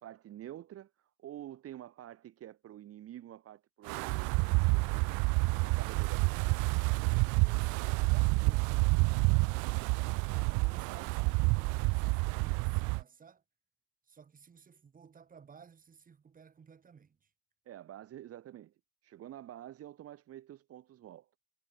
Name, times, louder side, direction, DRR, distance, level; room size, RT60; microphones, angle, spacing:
voice 1, 0.0-5.2 5.6-6.4 9.7-9.9 17.7-18.7 19.0-21.3, right 12 dB, 40° right, 2.7 m, -48 dB
Wind, 3.9-13.0, right 29 dB, 60° right, 0.6 m, -29 dB
voice 2, 7.1-9.2 10.6-13.4 14.1-17.3, right 6 dB, 25° right, 3.5 m, -56 dB
supercardioid pair, 115°, 35 cm